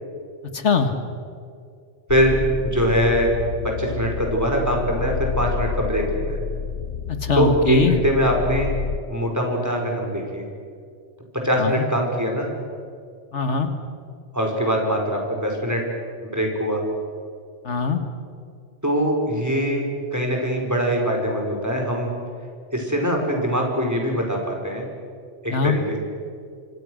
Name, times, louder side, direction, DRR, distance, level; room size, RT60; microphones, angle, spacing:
voice 1, 0.5-0.9 7.1-8.0 11.6-11.9 13.3-13.7 17.6-18.0 25.5-25.8, left 4 dB, 75° left, 7 dB, 1.9 m, -21 dB
sound 1, 2.1-9.0, left 7 dB, 90° left, 1.2 m, -29 dB
voice 2, 2.1-3.3 3.6-6.4 7.3-8.7 9.1-10.4 11.4-12.5 14.3-15.8 16.2-16.8 18.8-22.1 22.7-24.8 25.4-25.8, equal, 15° right, 0 dB, 5.1 m, -22 dB
27.0 x 25.5 x 6.5 m, 2.3 s
omnidirectional pair, 1.2 m